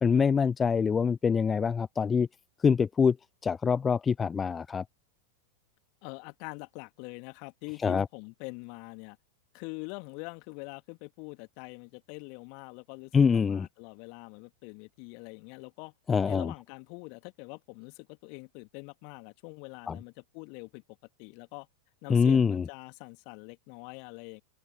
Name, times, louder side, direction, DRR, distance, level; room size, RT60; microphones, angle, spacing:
voice 1, 0.0-2.3 2.6-3.2 3.4-4.8 7.8-8.0 13.1-13.7 16.1-16.5 19.9-20.0 22.1-22.6, left 6 dB, 20° left, 0.8 m, -24 dB
voice 2, 6.0-9.2 9.5-15.9 16.2-20.8 21.2-21.7 22.0-24.4, left 39 dB, 45° left, 2.3 m, -44 dB
open air
figure-of-eight pair, 90°, 0 cm